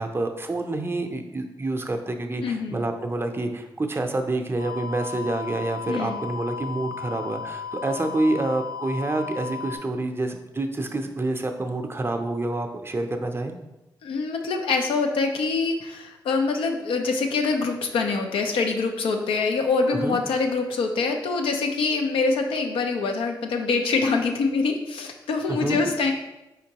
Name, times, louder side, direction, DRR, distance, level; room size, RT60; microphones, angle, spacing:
voice 1, 0.0-13.6 20.0-20.2 25.5-25.9, right 2 dB, 25° right, 5 dB, 0.5 m, -28 dB
voice 2, 2.4-2.8 5.9-6.2 14.0-26.1, left 4 dB, 85° left, 4 dB, 0.5 m, -25 dB
sound 1, 4.6-9.8, left 7 dB, 65° left, 1.2 m, -35 dB
4.4 x 3.7 x 2.9 m, 0.97 s
cardioid pair, 55°, 9 cm